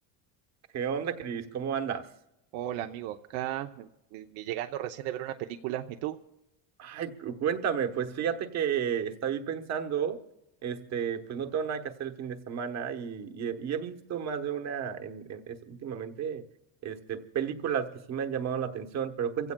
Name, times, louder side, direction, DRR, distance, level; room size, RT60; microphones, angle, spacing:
voice 1, 0.7-2.1 6.8-10.2 10.6-16.4 16.8-19.5, right 8 dB, 35° right, 6 dB, 1.1 m, -32 dB
voice 2, 2.5-6.2, right 13 dB, 75° right, 5 dB, 0.8 m, -35 dB
29.0 x 16.0 x 2.2 m, 0.89 s
cardioid pair, 160°, 48 cm